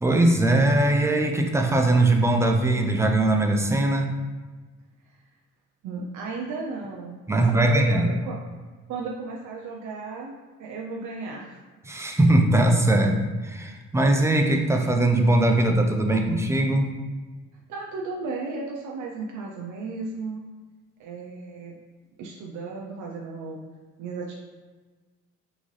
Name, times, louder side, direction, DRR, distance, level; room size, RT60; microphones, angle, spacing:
voice 1, 0.0-4.1 7.3-8.1 11.9-13.2 13.4-16.9, right 1 dB, 10° right, 3 dB, 0.5 m, -20 dB
voice 2, 5.8-8.4 8.9-11.6 17.7-20.4 21.0-21.7 22.2-23.6 24.0-24.3, right 4 dB, 80° right, -2 dB, 0.6 m, -34 dB
3.9 x 3.7 x 3.2 m, 1.3 s
cardioid pair, 90°, 30 cm